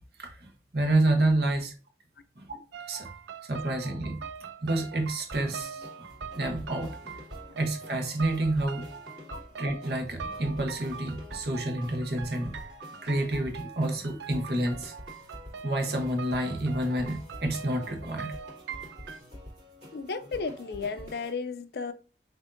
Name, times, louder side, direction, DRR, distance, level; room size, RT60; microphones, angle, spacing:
voice 1, 0.2-1.7 2.4-2.6 2.9-3.1 3.5-4.2 4.6-6.1 6.4-7.1 7.5-8.9 9.6-12.6 13.0-14.9 15.6-18.3, right 1 dB, 60° right, 0.9 m, -29 dB
sound 1, 2.7-19.2, right 7 dB, 85° right, 0.4 m, -43 dB
sound 2, 5.3-21.3, left 1 dB, 40° right, 2.2 m, -47 dB
voice 2, 19.9-21.9, left 4 dB, 60° left, 0.4 m, -34 dB
6.2 x 2.6 x 2.5 m
head